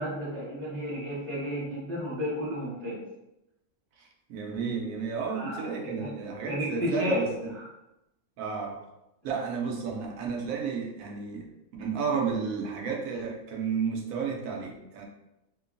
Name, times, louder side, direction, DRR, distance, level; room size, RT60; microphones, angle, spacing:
voice 1, 0.0-3.0 5.3-6.1 6.5-7.2, equal, ahead, -11 dB, 0.9 m, -32 dB
voice 2, 4.0-7.5 8.4-8.8 9.2-11.5 11.8-15.1, right 5 dB, 80° right, 0 dB, 1.0 m, -32 dB
3.0 x 2.2 x 2.4 m, 0.90 s
omnidirectional pair, 1.4 m